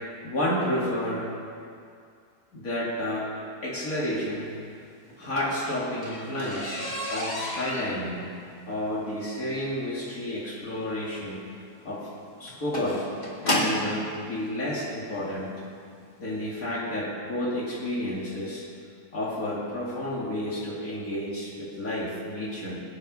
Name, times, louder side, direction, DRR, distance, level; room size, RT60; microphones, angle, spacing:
voice 1, 0.0-1.3 2.5-4.5 5.2-6.8 7.1-8.2 8.6-11.4 11.8-12.1 12.4-13.1 13.4-15.5 16.2-18.6 19.1-22.8, left 1 dB, 70° left, -7 dB, 2.9 m, -31 dB
sound 1, 5.1-14.0 14.9-15.0 15.5-15.7 16.0-16.1 16.4-16.5, left 1 dB, 30° left, 2.3 m, -32 dB
20.5 x 9.2 x 5.4 m, 2.4 s
omnidirectional pair, 1.6 m